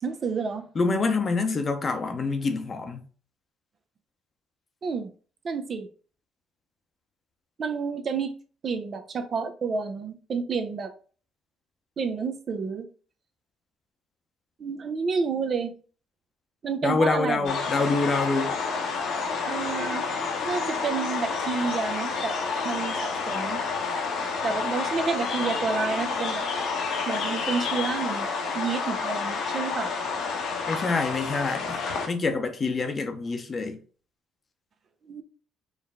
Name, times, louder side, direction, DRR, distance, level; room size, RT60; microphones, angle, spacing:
voice 1, 0.0-0.6 4.8-5.1 5.4-5.9 7.6-8.3 8.6-10.9 12.0-12.9 14.6-15.7 16.6-17.5 19.4-20.1 20.4-22.4 22.6-23.6 24.4-26.5 27.1-28.3 28.5-29.9 35.1-35.2, right 5 dB, 45° right, 0.6 m, -29 dB
voice 2, 0.7-3.0 16.8-18.6 30.7-33.8, left 3 dB, 35° left, 0.8 m, -26 dB
sound 1, 17.4-32.1, left 4 dB, 75° left, 1.1 m, -29 dB
4.7 x 2.2 x 3.5 m
supercardioid pair, 80°, 0 cm